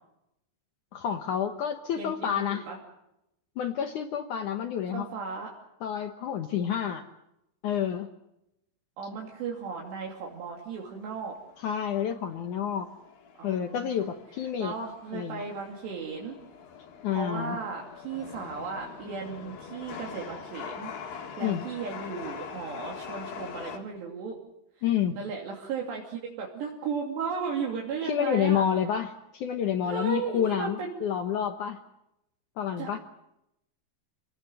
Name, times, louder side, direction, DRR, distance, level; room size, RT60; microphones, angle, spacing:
voice 1, 0.9-2.7 3.6-5.1 5.8-7.0 7.6-8.1 11.6-12.9 13.4-14.7 15.1-15.4 17.0-17.6 21.4-21.6 24.8-25.2 28.1-31.8 32.6-33.0, left 9 dB, 75° left, 7 dB, 1.8 m, -29 dB
voice 2, 2.0-2.8 4.9-5.5 9.0-11.3 13.4-13.9 14.6-16.4 17.1-24.4 25.2-28.7 29.8-31.0 32.8-33.0, right 5 dB, 70° right, -1 dB, 4.8 m, -35 dB
Chatter / Subway metro underground, 9.5-23.8, left 7 dB, 55° left, 3.7 m, -44 dB
27.5 x 19.0 x 7.9 m, 0.85 s
omnidirectional pair, 5.2 m